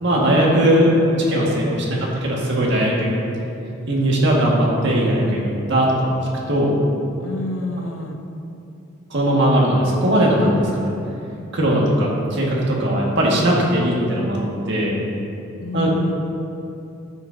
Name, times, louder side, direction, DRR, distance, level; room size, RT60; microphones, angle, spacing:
voice 1, 0.0-3.2 3.9-6.1 6.5-6.7 9.1-10.9 11.5-14.4 14.7-15.0 15.7-15.9, right 1 dB, 60° right, -3 dB, 1.9 m, -19 dB
voice 2, 0.7-2.0 7.2-8.2 15.6-16.1, left 2 dB, 80° left, 5 dB, 0.8 m, -30 dB
13.0 x 8.3 x 2.8 m, 2.7 s
head